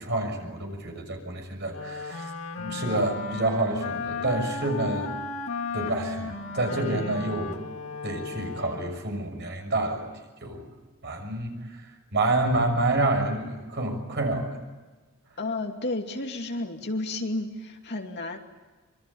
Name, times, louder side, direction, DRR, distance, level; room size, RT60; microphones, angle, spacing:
voice 1, 0.0-2.3 2.6-5.1 5.7-7.5 8.0-10.1 10.4-10.6 11.0-11.9 12.1-14.6, right 2 dB, 50° right, 4 dB, 6.5 m, -28 dB
Wind instrument woodwind instrument, 1.7-9.2, left 4 dB, 65° left, 2.3 m, -35 dB
voice 2, 15.4-18.4, left 2 dB, 50° left, 3 dB, 2.5 m, -31 dB
26.0 x 23.0 x 8.7 m, 1.2 s
head